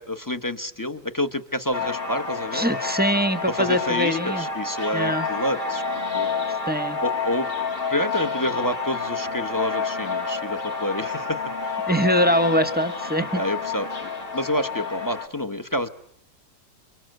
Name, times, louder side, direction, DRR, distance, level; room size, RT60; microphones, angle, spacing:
voice 1, 0.0-2.7 3.5-5.8 6.1-6.3 7.0-7.5 7.9-11.7 13.3-15.9, left 1 dB, 15° left, 10 dB, 1.1 m, -28 dB
sound 1, 1.7-15.3, left 4 dB, 35° left, 2.0 m, -29 dB
voice 2, 2.5-4.5 4.9-5.3 6.7-7.0 11.9-13.4, equal, 5° right, 11 dB, 1.2 m, -23 dB
28.5 x 24.0 x 7.9 m, 0.69 s
omnidirectional pair, 1.8 m